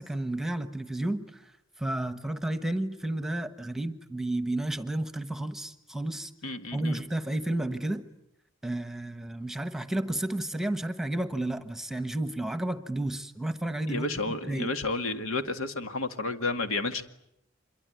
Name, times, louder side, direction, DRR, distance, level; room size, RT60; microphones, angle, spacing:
voice 1, 0.0-1.5 1.8-6.3 6.7-8.1 8.6-14.1 14.4-14.7, right 1 dB, ahead, 10 dB, 1.2 m, -32 dB
voice 2, 6.4-7.0 13.9-17.0, left 3 dB, 85° left, 7 dB, 2.1 m, -31 dB
26.0 x 23.0 x 9.4 m, 0.79 s
head